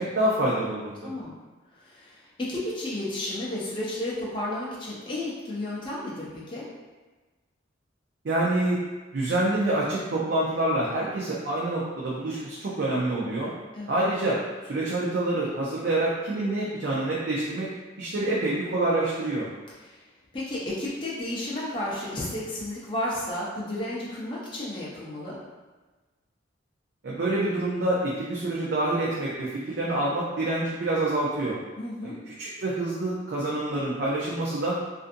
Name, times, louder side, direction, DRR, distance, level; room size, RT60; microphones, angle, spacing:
voice 1, 0.0-1.1 8.2-8.8 9.1-13.5 13.9-14.4 14.6-17.7 18.0-19.5 27.0-31.6 32.0-32.1 32.4-34.8, right 2 dB, 60° right, -6 dB, 0.4 m, -27 dB
voice 2, 1.8-6.7 13.7-14.0 19.8-20.0 20.3-25.4 31.8-32.2, left 1 dB, 25° left, -6 dB, 0.5 m, -32 dB
2.5 x 2.5 x 2.5 m, 1.2 s
head